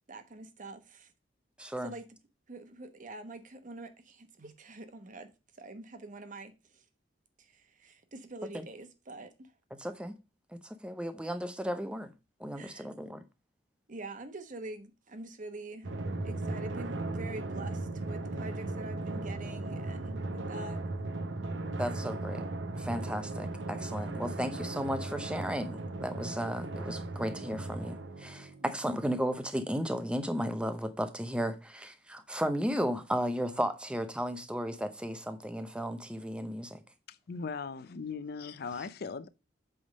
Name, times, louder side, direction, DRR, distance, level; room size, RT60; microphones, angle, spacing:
voice 1, 0.1-1.1 1.8-2.0 2.5-5.3 5.6-6.8 7.4-9.3 12.5-12.9 13.9-15.9 16.2-20.8 28.6-28.7, right 2 dB, 45° right, 1.1 m, -45 dB
voice 2, 1.6-1.9 8.5-8.6 9.8-10.2 10.6-12.1 12.4-13.2 21.8-22.4 22.8-36.8, equal, 5° right, 0.7 m, -34 dB
Drum, 15.8-28.9, right 2 dB, 75° right, 0.8 m, -37 dB
voice 3, 37.1-39.3, left 5 dB, 55° left, 0.5 m, -39 dB
8.0 x 3.6 x 5.2 m
head